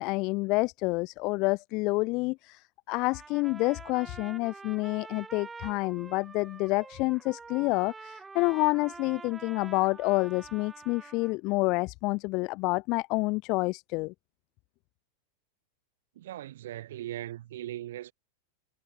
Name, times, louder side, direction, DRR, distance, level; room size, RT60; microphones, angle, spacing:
voice 1, 0.0-14.1, left 25 dB, 40° left, 0.6 m, -28 dB
Trumpet, 2.9-11.4, right 4 dB, 15° right, 6.0 m, -47 dB
voice 2, 16.1-18.1, right 13 dB, 55° right, 5.2 m, -39 dB
figure-of-eight pair, 90°, 0 cm